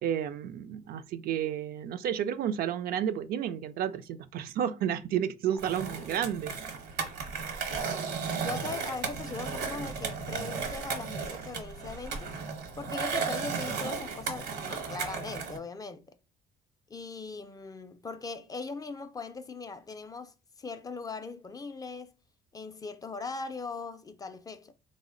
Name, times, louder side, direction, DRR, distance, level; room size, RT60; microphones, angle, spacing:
voice 1, 0.0-6.5, right 9 dB, 65° right, 0.4 m, -31 dB
Skateboard, 5.6-15.6, right 5 dB, 80° right, 1.0 m, -35 dB
voice 2, 7.7-12.4 12.8-16.0 16.9-22.1 22.5-24.7, left 4 dB, 20° left, 0.3 m, -40 dB
3.4 x 2.1 x 3.7 m
cardioid pair, 110°, 17 cm